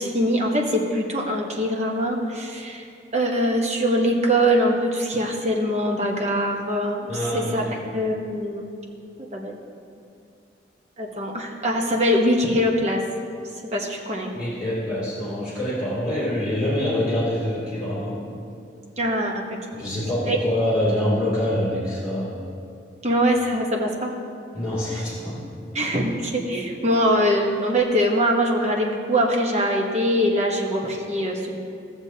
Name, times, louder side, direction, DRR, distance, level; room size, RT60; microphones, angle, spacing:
voice 1, 0.0-2.8 3.1-8.6 9.3-9.6 11.0-13.0 13.7-14.3 19.0-19.8 20.2-20.4 23.0-24.1 25.7-31.6, equal, 35° right, 0 dB, 1.0 m, -23 dB
voice 2, 7.1-7.8 14.3-18.2 19.7-22.4 24.5-25.4, left 1 dB, 5° right, -11 dB, 2.5 m, -25 dB
15.5 x 7.1 x 2.8 m, 2.5 s
head